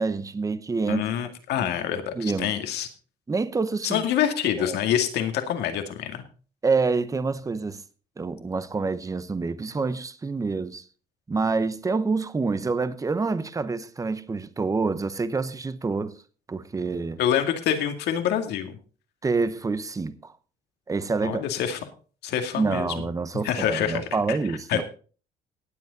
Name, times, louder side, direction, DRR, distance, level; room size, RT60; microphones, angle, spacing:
voice 1, 0.0-1.0 2.1-2.5 3.3-4.0 4.6-4.8 6.6-7.8 8.2-10.8 11.3-16.2 16.5-17.2 19.2-20.3 20.9-21.4 22.6-24.8, right 4 dB, 20° right, 1.0 m, -27 dB
voice 2, 0.9-2.9 3.8-6.2 17.2-18.8 21.2-21.8 22.2-22.9 23.4-24.4 24.7-24.8, left 9 dB, 80° left, 2.2 m, -26 dB
18.5 x 8.1 x 4.0 m
cardioid pair, 110°, 17 cm